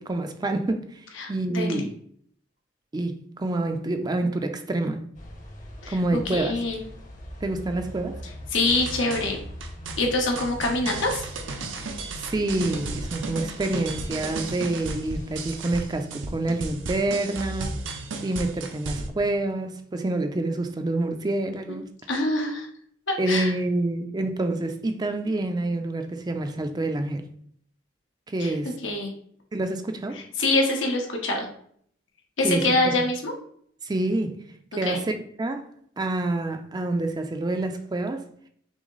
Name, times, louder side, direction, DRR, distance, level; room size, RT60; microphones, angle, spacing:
voice 1, 0.0-1.0 1.3-1.9 2.9-5.1 5.9-6.6 7.4-8.2 11.8-17.8 18.2-21.9 23.2-27.3 28.3-28.8 29.5-30.2 32.4-33.1 33.8-34.5 34.8-35.7 36.0-38.3, right 2 dB, 20° right, 0.4 m, -27 dB
voice 2, 1.2-1.8 5.8-6.0 6.3-6.8 8.5-9.4 10.0-11.2 22.1-22.7 23.1-23.5 28.4-28.5 28.8-29.1 30.4-31.5 32.4-33.3 34.7-35.0, left 2 dB, 85° left, 1.1 m, -25 dB
sound 1, 5.1-15.6, equal, 40° left, 0.9 m, -42 dB
sound 2, 8.6-19.1, right 3 dB, 80° right, 0.7 m, -34 dB
6.0 x 2.0 x 3.8 m
head